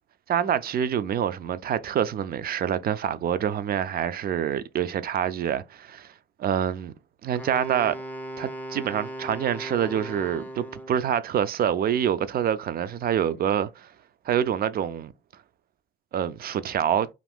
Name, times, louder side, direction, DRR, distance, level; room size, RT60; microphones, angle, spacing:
voice 1, 0.3-6.1 6.4-6.9 7.2-8.0 8.4-13.9 14.3-15.1 16.1-17.1, right 9 dB, 50° right, 0.4 m, -26 dB
Wind instrument woodwind instrument, 7.4-11.1, right 1 dB, 10° left, 0.5 m, -37 dB
2.6 x 2.5 x 3.4 m
cardioid pair, 90°, 20 cm